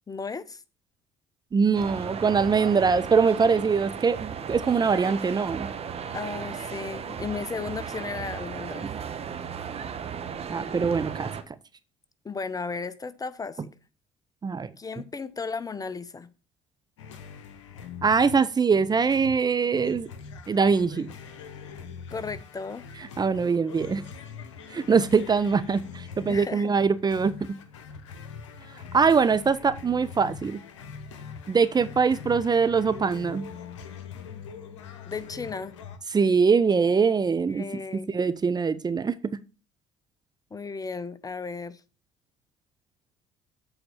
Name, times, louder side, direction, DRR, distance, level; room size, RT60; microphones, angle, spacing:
voice 1, 0.1-0.6 6.1-8.9 12.2-13.7 14.8-16.3 22.1-22.9 26.3-26.7 35.1-35.7 37.5-38.1 40.5-41.8, left 4 dB, 25° left, 0.7 m, -35 dB
voice 2, 1.5-5.7 10.5-11.3 14.4-14.7 18.0-20.1 20.5-21.1 23.2-24.0 24.7-27.3 28.9-30.6 31.5-33.5 36.1-37.6 38.1-39.2, right 5 dB, 25° right, 0.6 m, -23 dB
sound 1, 1.7-11.4, right 7 dB, 40° right, 1.1 m, -35 dB
sound 2, 17.0-36.0, left 6 dB, 85° left, 0.9 m, -43 dB
7.9 x 4.2 x 7.0 m
hypercardioid pair, 60°, 15 cm